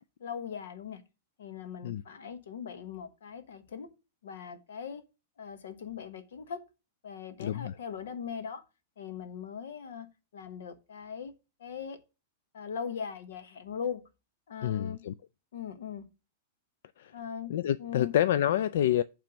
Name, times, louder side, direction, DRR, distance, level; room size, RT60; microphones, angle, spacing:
voice 1, 0.2-1.0 1.4-3.9 4.2-5.0 5.4-6.6 7.0-8.6 9.0-10.1 10.3-11.3 11.6-12.0 12.5-14.0 14.5-15.0 15.5-16.0 17.1-17.5 17.8-18.1, left 7 dB, 85° left, 1.2 m, -40 dB
voice 2, 7.4-7.7 14.6-15.1 17.0-17.1 17.5-19.0, left 11 dB, 60° left, 0.3 m, -28 dB
8.8 x 3.4 x 6.3 m
supercardioid pair, 175°, 0 cm